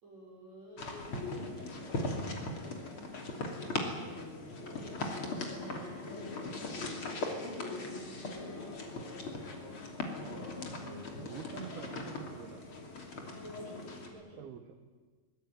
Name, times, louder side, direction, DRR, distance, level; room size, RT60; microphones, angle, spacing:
voice 1, 0.0-3.7 4.6-6.5 7.5-9.0 13.6-13.8 14.1-14.4, equal, 45° right, -1 dB, 7.4 m, -53 dB
sound 1, 0.8-14.1, left 2 dB, 35° left, 3.4 m, -39 dB
voice 2, 10.4-10.7 11.2-12.6 14.4-14.9, right 9 dB, 80° right, 6 dB, 3.3 m, -47 dB
23.5 x 20.5 x 9.2 m, 1.4 s
omnidirectional pair, 4.5 m